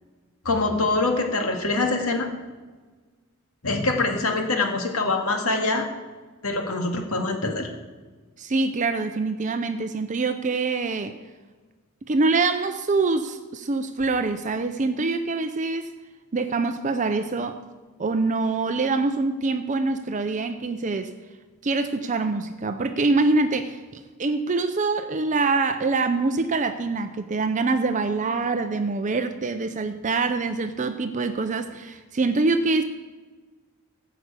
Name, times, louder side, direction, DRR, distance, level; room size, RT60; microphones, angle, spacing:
voice 1, 0.5-2.3 3.6-5.9 6.4-7.7, left 3 dB, 90° left, 3 dB, 2.0 m, -24 dB
voice 2, 8.4-11.2 12.1-15.9 16.3-17.6 18.0-21.1 21.6-32.8, right 3 dB, 35° right, 8 dB, 0.6 m, -25 dB
14.5 x 6.0 x 8.2 m, 1.4 s
head